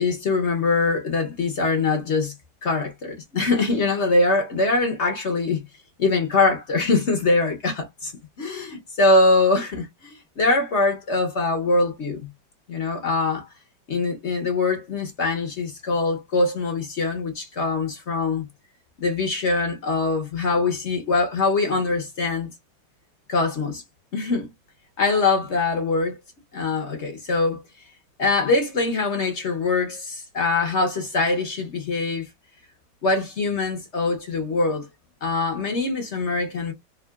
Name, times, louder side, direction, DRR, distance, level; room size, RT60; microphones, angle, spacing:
voice 1, 0.0-2.3 2.6-5.6 6.0-8.1 8.4-12.2 12.7-13.5 13.9-18.4 19.0-22.5 23.3-23.8 24.1-24.5 25.0-26.2 26.5-27.6 28.2-32.3 33.0-34.8 35.2-36.7, left 3 dB, 50° left, 0.8 m, -23 dB
3.6 x 2.4 x 2.3 m
omnidirectional pair, 2.1 m